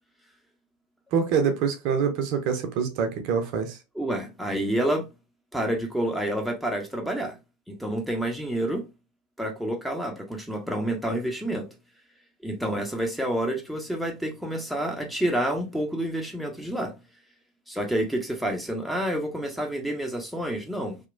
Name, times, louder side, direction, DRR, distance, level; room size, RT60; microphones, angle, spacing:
voice 1, 1.1-3.8, right 6 dB, 50° right, 0.5 m, -25 dB
voice 2, 3.9-5.0 5.5-7.4 7.7-8.8 9.4-11.7 12.4-16.9 17.7-21.0, right 1 dB, ahead, 0.7 m, -28 dB
2.8 x 2.1 x 2.4 m
figure-of-eight pair, 80°, 0 cm